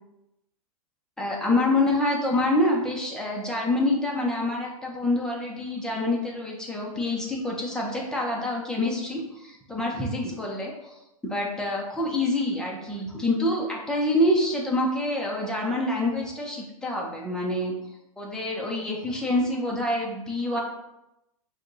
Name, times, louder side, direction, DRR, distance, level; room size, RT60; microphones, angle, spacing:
voice 1, 1.2-10.9 11.2-17.7 18.2-20.6, left 1 dB, 5° left, -2 dB, 1.0 m, -26 dB
5.0 x 2.5 x 4.0 m, 0.89 s
hypercardioid pair, 120°, 19 cm